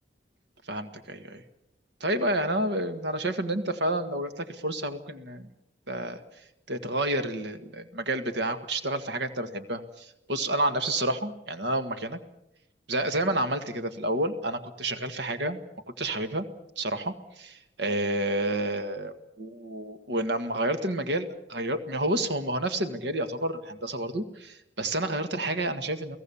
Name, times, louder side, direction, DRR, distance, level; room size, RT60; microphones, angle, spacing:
voice 1, 0.7-1.4 2.0-5.5 5.9-6.2 6.7-12.2 12.9-15.6 15.9-16.5 16.8-26.2, right 1 dB, 65° right, 9 dB, 1.7 m, -30 dB
29.5 x 17.5 x 7.1 m, 0.86 s
head